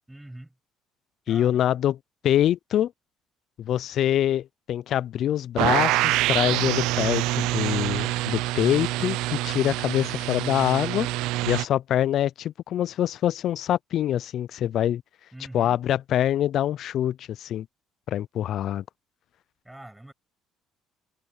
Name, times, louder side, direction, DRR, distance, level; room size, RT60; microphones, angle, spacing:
voice 1, 0.1-0.5 1.3-1.8 15.3-15.8 19.6-20.1, right 1 dB, 5° right, 7.4 m, -44 dB
voice 2, 1.3-2.0 2.2-2.9 3.6-11.1 11.5-15.0 15.5-17.7 18.1-18.8, left 11 dB, 50° left, 0.3 m, -25 dB
sound 1, 5.6-11.6, right 18 dB, 85° right, 0.5 m, -26 dB
cardioid pair, 145°, 0 cm